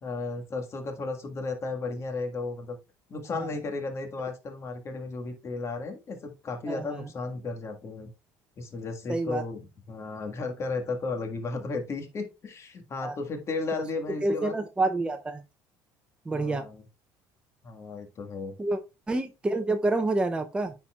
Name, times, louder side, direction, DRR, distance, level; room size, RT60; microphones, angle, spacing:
voice 1, 0.0-2.8 3.1-8.1 8.6-14.5 16.3-16.8 17.6-18.6, left 3 dB, 40° left, 4 dB, 1.6 m, -34 dB
voice 2, 6.7-7.0 9.1-9.4 13.0-13.1 14.2-15.4 16.3-16.6 18.6-18.8 19.1-20.7, right 2 dB, 15° right, 7 dB, 0.6 m, -28 dB
9.9 x 4.2 x 2.3 m, 0.27 s
supercardioid pair, 100°, 8 cm